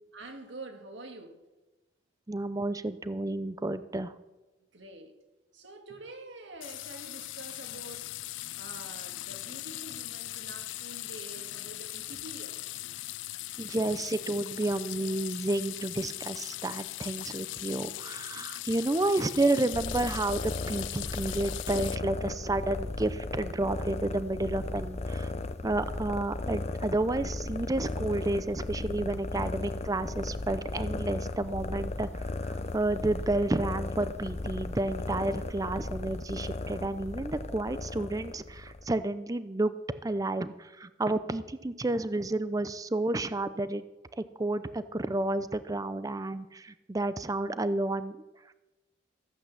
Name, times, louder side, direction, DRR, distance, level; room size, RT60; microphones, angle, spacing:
voice 1, 0.1-1.4 4.7-5.2 5.5-12.6 18.9-19.2, right 2 dB, 75° right, 1.9 m, -47 dB
voice 2, 2.3-4.1 13.6-25.3 25.6-39.7 40.0-43.8 44.2-48.2, right 2 dB, 20° right, 0.5 m, -31 dB
sound 1, 6.6-22.0, left 17 dB, 80° left, 0.3 m, -40 dB
sound 2, 19.7-39.0, left 2 dB, 35° left, 0.6 m, -36 dB
14.5 x 8.2 x 7.3 m
head